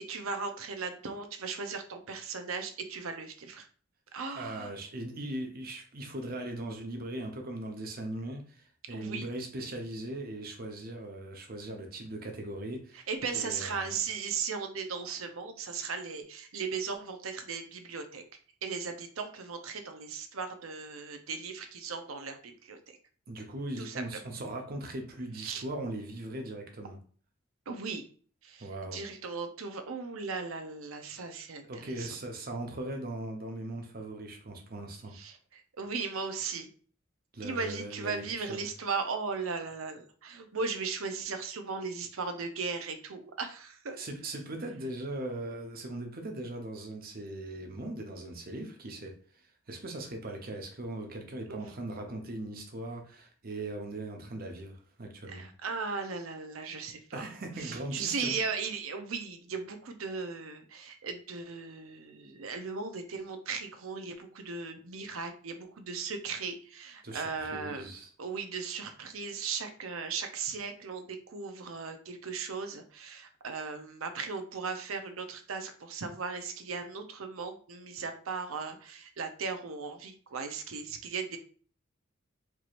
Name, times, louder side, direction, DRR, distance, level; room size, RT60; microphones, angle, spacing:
voice 1, 0.1-3.7 4.1-4.7 8.9-9.3 12.9-18.2 18.6-23.0 23.8-24.0 25.4-25.6 27.7-28.0 28.4-32.1 35.1-36.7 37.4-44.0 51.5-51.7 55.3-57.3 57.6-81.4, right 5 dB, 85° right, 0.7 m, -37 dB
voice 2, 4.3-13.1 13.3-14.0 23.3-27.0 28.6-29.0 31.7-35.1 37.3-38.6 44.0-55.4 57.1-58.3 67.0-68.1, right 1 dB, 45° right, 0.9 m, -39 dB
4.6 x 3.0 x 2.5 m
head